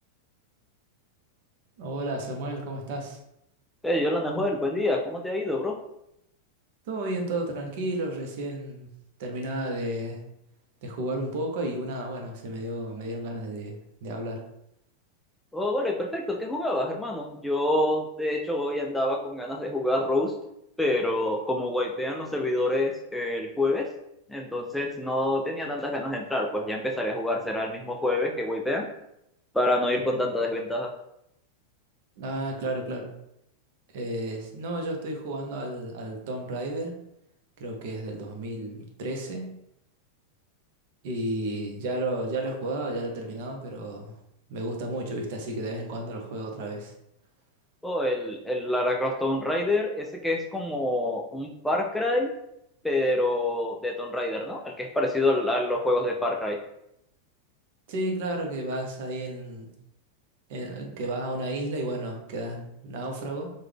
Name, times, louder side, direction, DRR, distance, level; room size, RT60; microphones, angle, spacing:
voice 1, 1.8-3.2 6.9-8.9 9.2-10.2 10.8-14.4 30.0-30.2 32.2-33.1 33.9-37.0 37.6-39.5 41.0-44.2 44.5-46.9 57.9-59.7 60.5-63.5, right 1 dB, 50° right, 2 dB, 0.6 m, -32 dB
voice 2, 3.8-5.8 15.5-20.3 20.8-23.9 24.3-28.9 29.5-30.9 47.8-52.3 52.8-56.6, left 1 dB, 5° left, 1 dB, 0.3 m, -27 dB
3.1 x 2.2 x 3.3 m, 0.81 s
figure-of-eight pair, 90°, 0 cm